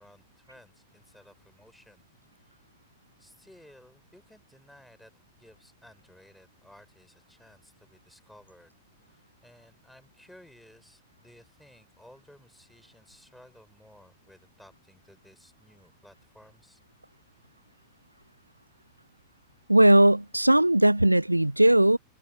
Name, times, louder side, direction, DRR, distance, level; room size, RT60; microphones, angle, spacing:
voice 1, 0.0-2.1 2.4-2.6 3.2-5.1 5.4-8.7 9.0-16.8, left 1 dB, ahead, 5.4 m, -56 dB
voice 2, 19.7-22.0, right 1 dB, 85° right, 0.3 m, -19 dB
figure-of-eight pair, 90°, 0 cm